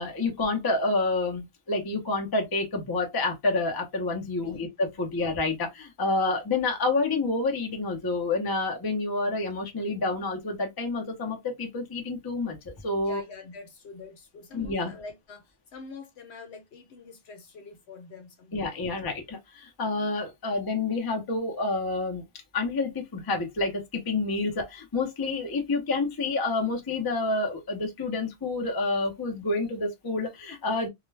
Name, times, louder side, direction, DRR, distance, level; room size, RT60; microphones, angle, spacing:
voice 1, 0.0-13.2 14.5-14.9 18.5-22.2 22.5-30.9, left 3 dB, 25° left, 0.6 m, -28 dB
voice 2, 4.3-5.1 13.0-18.9, left 4 dB, 70° left, 1.1 m, -46 dB
2.3 x 2.1 x 3.2 m
omnidirectional pair, 1.2 m